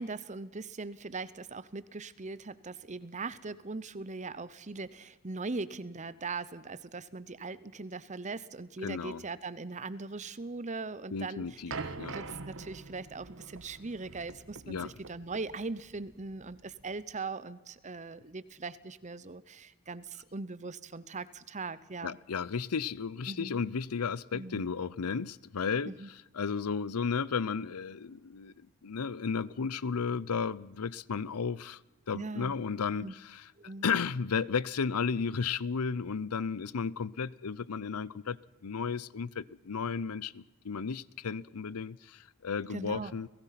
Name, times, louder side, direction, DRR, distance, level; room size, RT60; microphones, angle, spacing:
voice 1, 0.0-11.8 12.1-22.2 23.3-23.6 24.3-24.7 25.9-26.1 32.1-32.5 33.0-33.1 33.6-33.9 42.7-43.1, right 3 dB, 30° right, 0.8 m, -40 dB
voice 2, 8.8-9.2 11.1-12.2 14.7-14.9 22.0-31.8 32.1-43.3, left 5 dB, 85° left, 0.6 m, -34 dB
sound 1, 11.7-17.1, right 4 dB, 60° right, 1.3 m, -44 dB
30.0 x 17.5 x 5.9 m
head